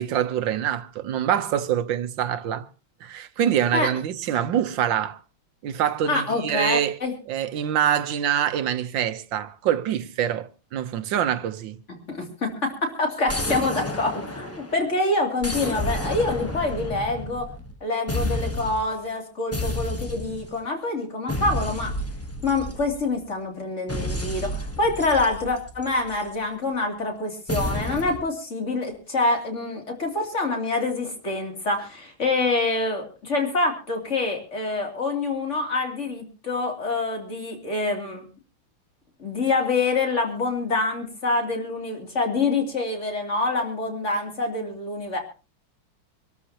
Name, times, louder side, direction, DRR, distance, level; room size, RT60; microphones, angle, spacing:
voice 1, 0.0-2.7 3.0-5.2 5.6-7.0 7.3-11.8, right 10 dB, 70° right, 1.6 m, -25 dB
voice 2, 6.1-7.1 12.1-17.5 17.8-21.9 22.4-38.3 39.2-45.2, left 3 dB, 35° left, 3.3 m, -26 dB
sound 1, 13.3-14.9 15.4-17.8 18.1-18.9 19.5-20.5 21.3-23.2 23.9-26.3 27.5-28.2, left 1 dB, 10° left, 0.7 m, -30 dB
26.0 x 13.0 x 2.9 m
omnidirectional pair, 2.1 m